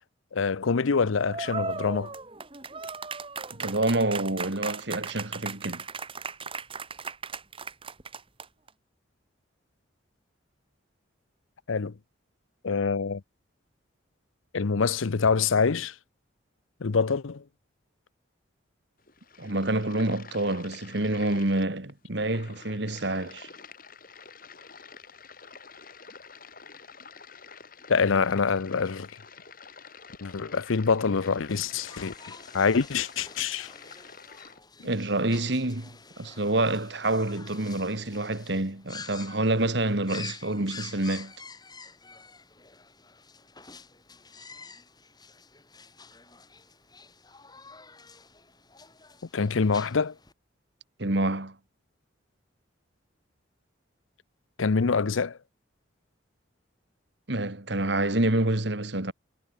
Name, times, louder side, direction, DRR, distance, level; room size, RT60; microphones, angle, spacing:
voice 1, 0.3-2.1 11.7-11.9 12.6-13.2 14.5-15.9 16.8-17.4 27.9-29.1 30.2-32.1 32.5-33.7 49.3-50.1 54.6-55.4, left 5 dB, 90° left, 0.7 m, -25 dB
sound 1, 1.3-8.7, right 4 dB, 25° right, 1.9 m, -37 dB
voice 2, 3.5-5.8 19.4-23.5 34.8-41.3 51.0-51.6 57.3-59.1, right 2 dB, 60° right, 2.1 m, -27 dB
sound 2, 19.0-34.6, left 5 dB, 45° left, 4.8 m, -48 dB
sound 3, 31.5-50.3, left 4 dB, 20° left, 7.5 m, -48 dB
head